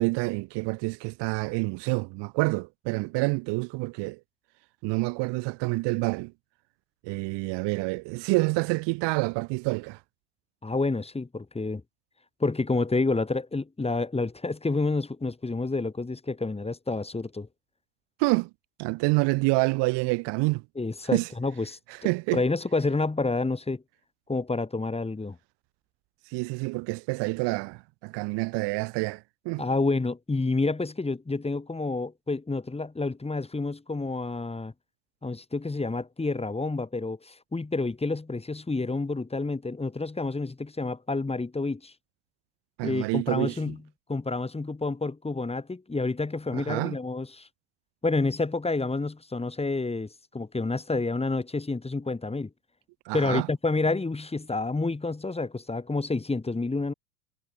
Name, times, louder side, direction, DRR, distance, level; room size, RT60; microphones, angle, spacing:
voice 1, 0.0-4.2 4.8-6.3 7.0-10.0 18.2-18.5 18.8-20.6 21.1-21.3 22.0-22.4 26.3-29.6 42.8-43.6 46.5-47.0 53.0-53.5, right 26 dB, 55° right, 1.4 m, -27 dB
voice 2, 10.6-11.8 12.4-17.5 20.7-21.8 22.3-23.8 24.3-25.4 29.6-34.7 35.2-41.9 42.8-43.8 44.1-47.5 48.0-52.5 53.1-56.9, left 3 dB, 10° left, 4.8 m, -29 dB
hypercardioid pair, 95°, 48 cm